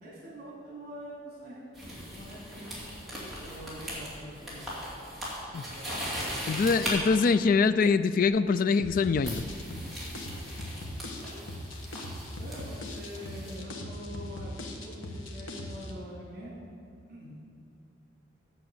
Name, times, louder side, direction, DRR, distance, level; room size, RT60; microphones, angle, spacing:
voice 1, 0.0-1.7 2.1-2.7 3.4-4.6 5.7-6.4 11.2-11.3 12.3-16.5 17.1-17.5, equal, 50° right, -6 dB, 2.6 m, -44 dB
sound 1, 1.7-7.0 8.2-8.5 9.2-13.5, equal, ahead, 2.4 m, -39 dB
voice 2, 6.5-9.4, left 5 dB, 45° left, 13 dB, 0.3 m, -24 dB
sound 2, 8.8-15.9, left 1 dB, 85° left, 1.3 m, -40 dB
8.8 x 7.0 x 7.3 m, 2.6 s
head